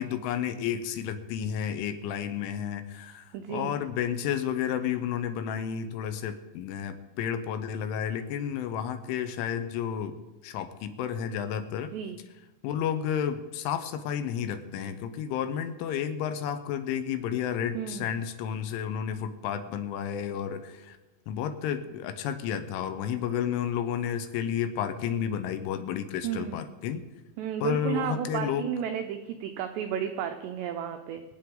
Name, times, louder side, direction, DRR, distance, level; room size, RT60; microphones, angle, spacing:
voice 1, 0.0-10.2 10.4-11.9 12.6-21.0 21.3-27.0 27.6-28.7, left 9 dB, 80° left, 9 dB, 3.1 m, -31 dB
voice 2, 3.3-3.8 11.9-12.2 17.7-18.1 26.2-26.6 27.4-31.2, right 9 dB, 85° right, 6 dB, 2.4 m, -33 dB
24.0 x 8.8 x 3.8 m, 1.1 s
omnidirectional pair, 5.8 m